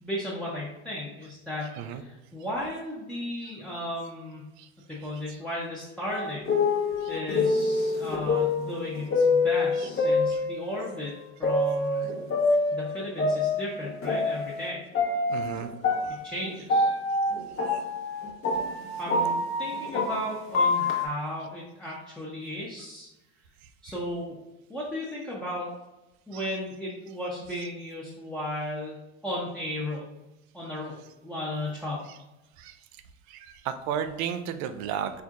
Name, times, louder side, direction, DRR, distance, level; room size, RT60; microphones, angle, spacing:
voice 1, 0.0-4.4 4.9-6.4 7.1-11.1 11.4-12.1 12.7-14.8 16.1-16.9 19.0-23.1 23.8-24.4 24.7-25.7 26.3-29.0 29.2-30.1 30.5-31.0 31.2-32.1, left 1 dB, ahead, -7 dB, 0.9 m, -35 dB
sound 1, 6.1-10.9 11.4-14.7 14.9-21.1, left 3 dB, 35° left, 1.1 m, -26 dB
voice 2, 15.3-15.7 17.7-17.8 26.3-26.4 32.6-32.8 33.3-35.2, right 8 dB, 50° right, 10 dB, 0.5 m, -33 dB
4.5 x 3.4 x 2.5 m, 0.98 s
supercardioid pair, 100°, 37 cm